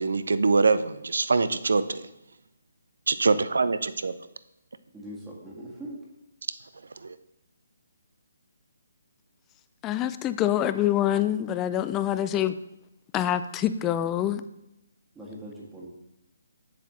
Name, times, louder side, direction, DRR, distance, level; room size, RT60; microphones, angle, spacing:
voice 1, 0.0-2.1 3.1-4.1 7.0-7.2, right 4 dB, 75° right, 14 dB, 0.5 m, -24 dB
voice 2, 4.9-6.0 15.1-15.9, right 1 dB, 10° right, -5 dB, 1.6 m, -41 dB
voice 3, 9.8-12.5 13.1-14.4, left 11 dB, 15° left, 13 dB, 0.3 m, -25 dB
7.4 x 7.4 x 3.1 m, 0.89 s
figure-of-eight pair, 150°, 0 cm